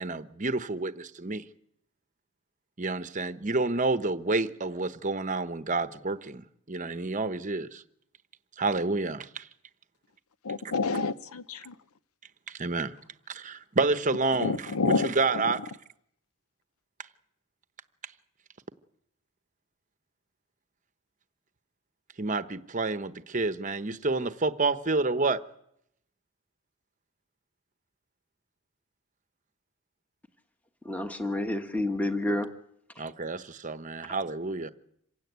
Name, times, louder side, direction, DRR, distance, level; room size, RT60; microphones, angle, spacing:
voice 1, 0.0-1.4 2.8-7.8 8.6-9.5 10.6-10.7 12.5-12.9 13.3-15.6 22.2-25.4 33.0-34.7, right 3 dB, 35° right, 0.9 m, -29 dB
voice 2, 10.4-11.7 14.3-15.1 15.4-15.5, left 3 dB, 80° left, 0.9 m, -28 dB
voice 3, 30.8-32.5 32.9-33.0, left 1 dB, 5° left, 1.3 m, -29 dB
26.5 x 16.5 x 9.4 m
head